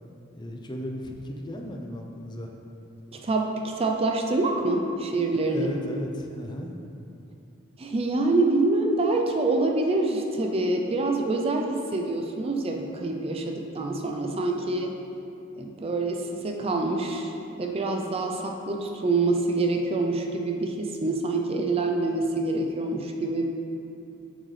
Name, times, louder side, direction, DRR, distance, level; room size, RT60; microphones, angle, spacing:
voice 1, 0.4-2.5 5.5-6.8, left 1 dB, 20° left, 1 dB, 0.5 m, -35 dB
voice 2, 3.1-5.7 7.8-14.9 15.6-17.3 17.6-23.4, right 2 dB, 30° right, 2 dB, 0.4 m, -26 dB
7.8 x 6.4 x 3.2 m, 2.7 s
head